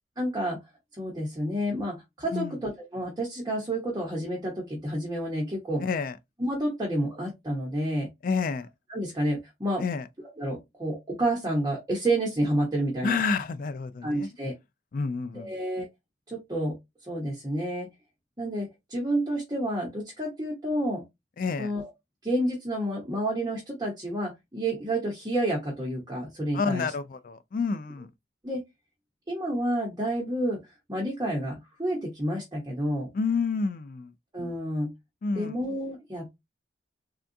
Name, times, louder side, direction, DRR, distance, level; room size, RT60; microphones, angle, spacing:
voice 1, 0.2-0.6 0.9-5.8 6.4-8.1 8.9-9.8 10.4-13.2 14.0-14.5 15.3-15.9 16.3-16.7 17.1-17.9 18.4-21.0 21.6-21.9 22.2-26.9 28.4-28.6 29.3-30.6 30.9-33.1 34.3-34.9 35.3-36.4, right 1 dB, 20° right, 0.8 m, -29 dB
voice 2, 5.8-6.2 8.2-8.7 9.8-10.0 13.0-14.3 14.9-15.5 21.4-21.7 26.5-28.1 33.1-34.1 35.2-35.5, left 5 dB, 45° left, 0.3 m, -29 dB
3.5 x 2.3 x 2.6 m
head